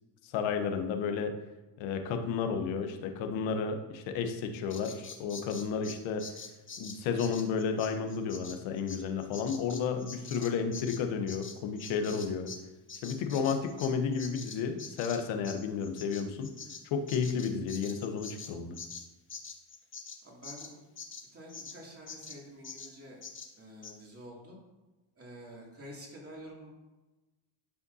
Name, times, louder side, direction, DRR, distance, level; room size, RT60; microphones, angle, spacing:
voice 1, 0.2-1.4 1.8-6.3 6.8-12.5 13.0-16.5 16.9-18.8, left 6 dB, 85° left, 6 dB, 1.0 m, -32 dB
Bird vocalization bird call bird song, 4.7-12.6 12.9-21.8 22.1-22.4 22.6-22.9 23.2-23.5 23.8-23.9, left 5 dB, 25° left, 0.9 m, -45 dB
voice 2, 20.2-20.8 21.3-23.2 23.6-24.6 25.2-26.7, equal, 30° right, -3 dB, 2.6 m, -48 dB
11.0 x 5.0 x 2.7 m, 1.1 s
cardioid pair, 95°, 45 cm